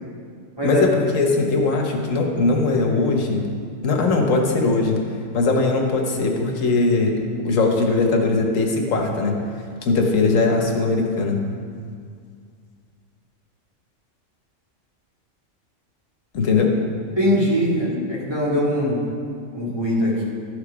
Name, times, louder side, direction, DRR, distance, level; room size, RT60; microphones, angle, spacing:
voice 1, 0.6-3.5 3.8-5.0 5.3-7.2 7.4-9.4 9.8-11.4 16.3-16.7, left 3 dB, 85° left, 1 dB, 1.4 m, -20 dB
voice 2, 17.2-19.0 19.5-20.2, equal, 20° right, -7 dB, 2.1 m, -21 dB
12.0 x 5.2 x 5.0 m, 2.1 s
omnidirectional pair, 1.3 m